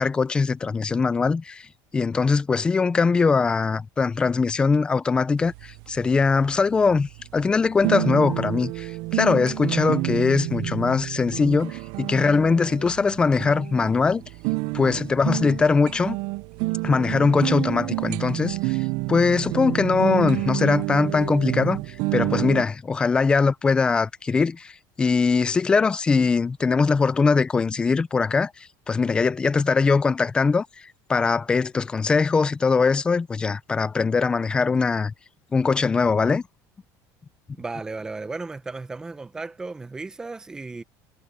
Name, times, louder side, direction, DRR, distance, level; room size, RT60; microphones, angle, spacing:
voice 1, 0.0-1.6 1.9-14.2 14.7-16.2 16.8-18.8 19.1-21.8 22.1-24.7 25.0-28.5 28.9-30.7 31.1-35.1 35.5-36.4, left 4 dB, 10° left, 0.4 m, -21 dB
sound 1, 5.4-22.6, right 22 dB, 55° right, 0.5 m, -29 dB
voice 2, 37.5-40.8, right 3 dB, 10° right, 0.8 m, -35 dB
cardioid pair, 180°, 8 cm